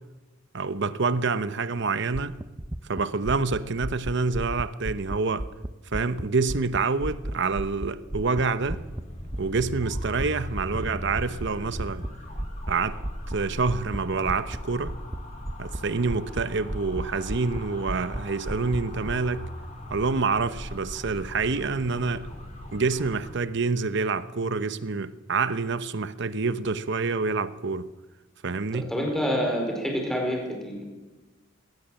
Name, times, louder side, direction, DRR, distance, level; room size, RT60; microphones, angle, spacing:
voice 1, 0.5-2.4 2.9-5.5 5.9-8.8 9.4-12.1 12.7-13.0 13.3-15.0 15.6-19.4 19.9-22.3 22.7-27.9 28.4-28.9, right 4 dB, 60° right, 0.9 m, -27 dB
sound 1, 2.1-6.2 6.5-9.6 9.9-10.3 10.6-10.9 11.1-11.5 11.8-12.1 12.4-12.7 13.0-13.4 13.7-14.0 14.3-14.6 14.9-15.2 15.5-15.8 16.1-17.0 17.3-17.6 17.9-18.2 18.5-19.1, right 1 dB, 15° right, 0.7 m, -33 dB
sound 2, 8.6-23.3, left 1 dB, 35° left, 4.1 m, -39 dB
voice 2, 28.7-30.8, equal, ahead, 4.5 m, -27 dB
21.0 x 17.5 x 7.7 m
head